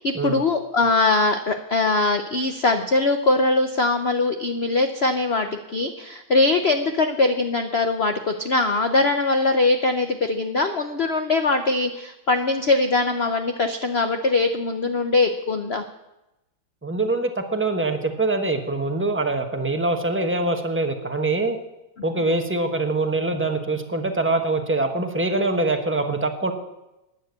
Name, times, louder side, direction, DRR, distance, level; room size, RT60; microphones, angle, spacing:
voice 1, 0.0-15.8, left 3 dB, 60° left, 7 dB, 0.6 m, -22 dB
voice 2, 16.8-21.6 22.0-26.5, right 2 dB, 10° right, 5 dB, 0.7 m, -24 dB
12.0 x 10.0 x 8.1 m, 0.95 s
omnidirectional pair, 2.2 m